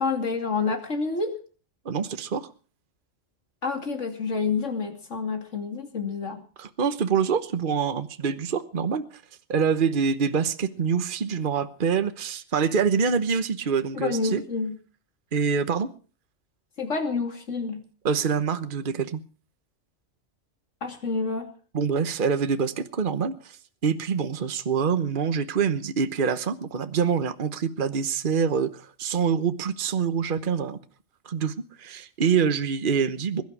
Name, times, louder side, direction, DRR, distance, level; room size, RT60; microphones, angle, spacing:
voice 1, 0.0-1.4 3.6-6.4 13.9-14.8 16.8-17.8 20.8-21.5, left 4 dB, 70° left, 2.9 m, -28 dB
voice 2, 1.8-2.5 6.6-9.0 9.5-14.4 15.3-15.9 18.0-19.2 21.7-23.6 23.8-30.8 31.2-33.4, right 6 dB, 45° right, 1.2 m, -25 dB
21.5 x 12.0 x 4.8 m
omnidirectional pair, 1.3 m